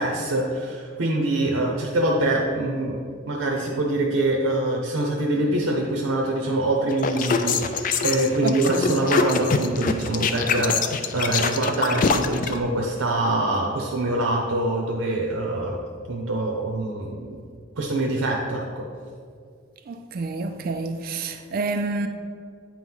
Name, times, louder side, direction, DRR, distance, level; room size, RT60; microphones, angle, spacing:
voice 1, 0.0-3.0 3.3-15.8 16.1-17.4 17.8-18.8, right 2 dB, 90° right, 0.7 m, -24 dB
sound 1, 6.9-12.6, left 5 dB, 40° left, 0.3 m, -24 dB
voice 2, 8.4-9.0 19.9-22.1, right 3 dB, 45° right, 0.3 m, -29 dB
8.7 x 3.1 x 5.5 m
head